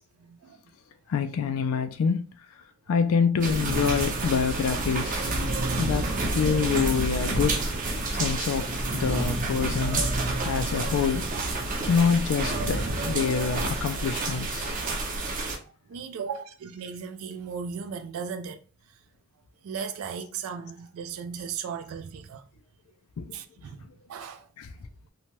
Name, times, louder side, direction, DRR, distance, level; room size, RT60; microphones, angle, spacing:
voice 1, 0.2-0.6 11.6-11.8 15.9-18.6 19.6-22.4 23.3-23.8 24.1-24.5, right 6 dB, 75° right, 0.3 m, -36 dB
voice 2, 1.1-2.2 2.9-5.3 5.8-7.7 8.1-10.1 10.4-11.3 11.9-14.8 23.2-23.3 24.6-24.7, left 6 dB, 70° left, 0.3 m, -26 dB
sound 1, 3.4-15.6, right 2 dB, 40° right, 0.6 m, -29 dB
2.8 x 2.2 x 2.9 m
head